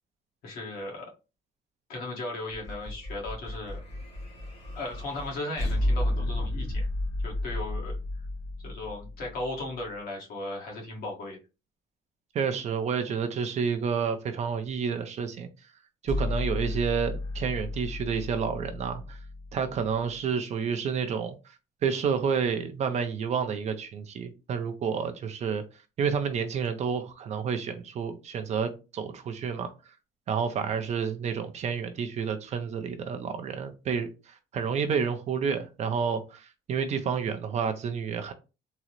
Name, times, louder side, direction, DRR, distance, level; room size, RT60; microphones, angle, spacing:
voice 1, 0.4-1.1 1.9-3.8 4.7-6.8 7.2-8.0 8.6-11.4, left 2 dB, 60° left, -1 dB, 1.3 m, -36 dB
sound 1, 2.5-9.8 16.1-20.2, left 1 dB, 35° left, 1.2 m, -33 dB
voice 2, 12.3-15.5 16.0-19.2 19.5-21.4 21.8-25.6 26.0-29.7 30.3-38.3, right 6 dB, 40° right, 7 dB, 0.5 m, -30 dB
3.7 x 2.0 x 3.0 m, 0.30 s
cardioid pair, 160°, 17 cm